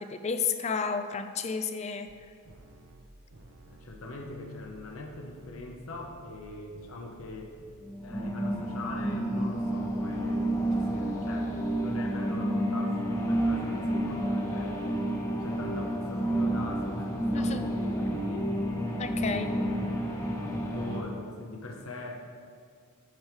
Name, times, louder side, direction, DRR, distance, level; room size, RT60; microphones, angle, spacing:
voice 1, 0.0-2.1 17.3-17.6 19.0-19.5, left 5 dB, 30° left, 8 dB, 0.4 m, -31 dB
sound 1, 2.1-7.3 7.6-8.2 8.4-9.0 9.3-9.9 10.2-10.6, right 1 dB, 70° right, 0.9 m, -54 dB
voice 2, 3.7-7.6 8.0-14.9 15.4-18.5 19.1-19.7 20.6-22.3, left 2 dB, 70° left, 1 dB, 1.0 m, -41 dB
sound 2, 7.8-21.0, right 1 dB, 15° left, 1.0 m, -30 dB
11.0 x 5.0 x 4.7 m, 2.1 s
head